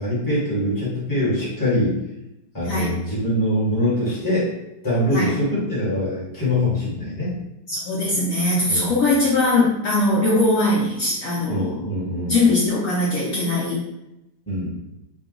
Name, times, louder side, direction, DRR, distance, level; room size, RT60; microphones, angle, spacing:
voice 1, 0.0-2.0 2.5-4.5 4.8-7.3 8.7-8.9 11.5-12.3 14.5-14.7, left 1 dB, 15° left, -7 dB, 1.2 m, -23 dB
voice 2, 2.6-3.1 5.1-5.4 7.7-11.8 12.3-13.8, left 2 dB, 60° left, -7 dB, 1.1 m, -21 dB
3.8 x 2.3 x 3.8 m, 0.89 s
omnidirectional pair, 1.8 m